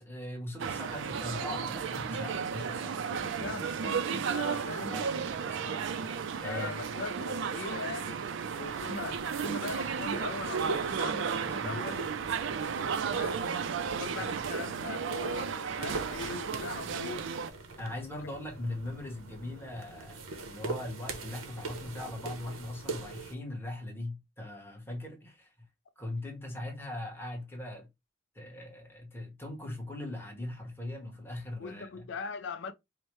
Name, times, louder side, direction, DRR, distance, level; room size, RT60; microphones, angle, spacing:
voice 1, 0.0-3.0 4.9-6.1 6.4-6.8 11.5-11.9 14.2-14.3 17.8-25.5 26.0-27.9 28.3-32.0, left 1 dB, 10° left, 1.0 m, -40 dB
sound 1, 0.6-17.5, right 6 dB, 60° right, 0.4 m, -34 dB
voice 2, 3.1-5.0 6.4-8.3 8.6-12.0 13.1-13.5 13.8-17.3 18.2-18.4 31.6-32.7, left 4 dB, 60° left, 0.4 m, -40 dB
sound 2, 8.5-23.4, right 3 dB, 75° right, 0.8 m, -42 dB
4.7 x 2.1 x 3.0 m
head